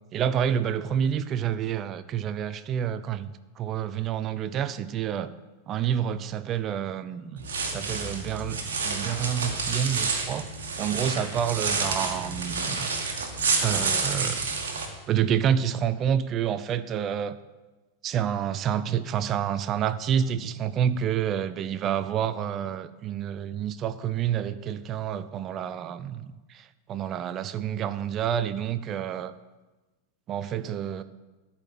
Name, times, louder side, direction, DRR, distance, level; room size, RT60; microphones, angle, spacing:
voice 1, 0.1-5.3 5.7-10.5 10.8-12.9 13.6-14.5 15.1-17.4 18.0-29.3 30.3-31.0, right 9 dB, 30° right, 14 dB, 0.5 m, -28 dB
sound 1, 7.4-14.9, right 4 dB, 60° right, 1.5 m, -29 dB
13.0 x 4.4 x 7.6 m, 1.2 s
figure-of-eight pair, 90°, 0 cm